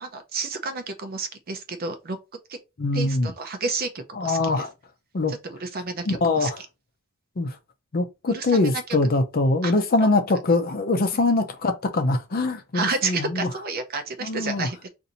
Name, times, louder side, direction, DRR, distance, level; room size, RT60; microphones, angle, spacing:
voice 1, 0.0-2.2 2.5-2.6 2.9-4.6 5.3-6.7 8.3-8.8 9.6-9.7 10.0-10.4 12.7-14.9, right 4 dB, 45° right, 0.6 m, -31 dB
voice 2, 2.8-3.3 4.2-4.7 5.1-5.3 6.1-6.6 7.4-7.6 7.9-13.5 14.2-14.7, left 2 dB, 45° left, 0.5 m, -23 dB
2.7 x 2.6 x 4.0 m
head